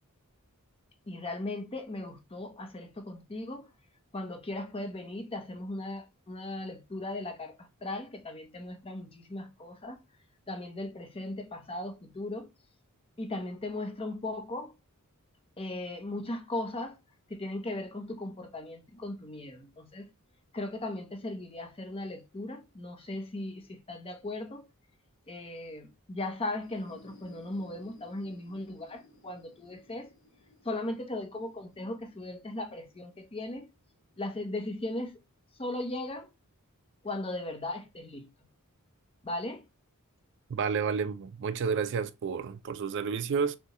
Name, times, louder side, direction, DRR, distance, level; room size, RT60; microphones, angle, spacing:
voice 1, 1.1-3.7 4.1-10.0 10.5-12.5 13.2-14.7 15.6-17.0 17.3-20.1 20.5-24.7 25.3-30.1 30.6-33.7 34.2-35.2 35.6-36.3 37.0-38.3 39.2-39.6, left 2 dB, 25° left, 0.7 m, -37 dB
sound 1, 26.5-34.1, left 2 dB, 65° left, 1.5 m, -60 dB
voice 2, 40.5-43.6, right 6 dB, 55° right, 0.4 m, -30 dB
6.3 x 2.2 x 3.0 m
head